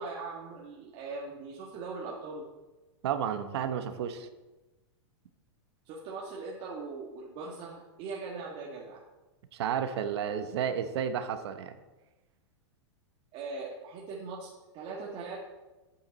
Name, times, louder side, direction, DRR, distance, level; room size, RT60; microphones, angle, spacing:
voice 1, 0.0-2.5 5.8-9.0 13.3-15.4, right 4 dB, 40° right, -3 dB, 1.7 m, -40 dB
voice 2, 3.0-4.3 9.5-11.7, right 8 dB, 65° right, 9 dB, 1.0 m, -32 dB
8.8 x 8.8 x 4.1 m, 1.1 s
hypercardioid pair, 130°, 15 cm